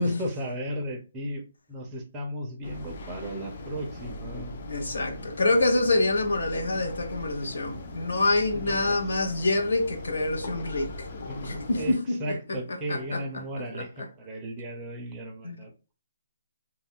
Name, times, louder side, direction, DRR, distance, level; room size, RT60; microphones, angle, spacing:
voice 1, 0.0-4.6 8.5-9.0 11.3-11.5 11.8-15.9, right 1 dB, 15° right, 0.4 m, -35 dB
sound 1, 2.6-11.9, left 2 dB, 45° left, 0.4 m, -40 dB
voice 2, 4.7-11.1 11.4-12.2 12.9-13.2 15.4-15.6, left 2 dB, 85° left, 0.7 m, -26 dB
2.3 x 2.1 x 3.5 m
hypercardioid pair, 170°, 0 cm